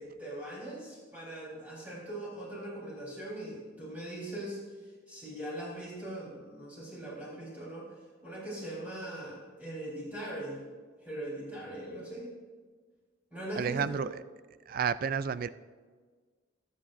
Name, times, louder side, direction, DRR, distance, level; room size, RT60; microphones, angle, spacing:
voice 1, 0.0-4.6 5.1-7.8 8.2-10.6 11.0-12.3 13.3-14.0, right 1 dB, 10° right, -7 dB, 3.8 m, -40 dB
voice 2, 13.6-14.1 14.7-15.5, right 7 dB, 45° right, 15 dB, 0.3 m, -30 dB
21.0 x 7.8 x 2.6 m, 1.5 s
head